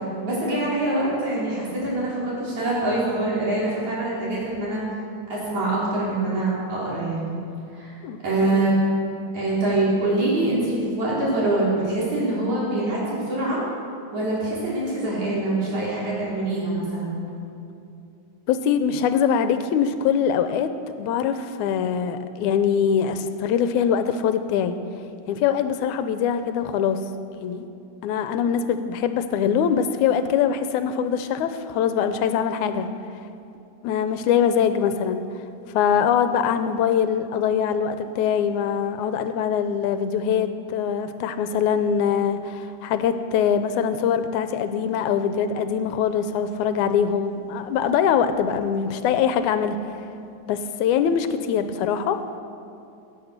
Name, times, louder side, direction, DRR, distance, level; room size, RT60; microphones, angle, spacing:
voice 1, 0.2-4.8 5.3-7.4 7.7-8.0 8.2-8.7 9.3-13.6 14.1-17.2, right 2 dB, 65° right, -7 dB, 5.4 m, -24 dB
voice 2, 18.5-20.7 21.0-24.8 25.3-27.0 27.4-27.7 28.0-32.9 33.8-35.2 35.7-49.8 50.5-52.2, left 8 dB, 80° left, 10 dB, 2.0 m, -23 dB
17.0 x 9.0 x 6.6 m, 2.7 s
omnidirectional pair, 3.5 m